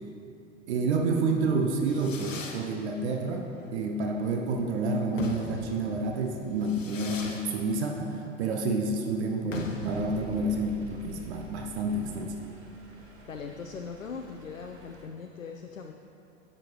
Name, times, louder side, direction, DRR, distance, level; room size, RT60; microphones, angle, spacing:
voice 1, 0.7-12.4, right 3 dB, 60° right, 2 dB, 0.8 m, -29 dB
Fireworks, 1.5-13.7, left 4 dB, 75° left, 1.0 m, -42 dB
sound 1, 9.9-15.1, right 2 dB, 35° right, 1.0 m, -49 dB
voice 2, 13.3-15.9, left 5 dB, 90° left, 4 dB, 0.5 m, -40 dB
10.5 x 7.6 x 3.1 m, 2.8 s
figure-of-eight pair, 85°, 38 cm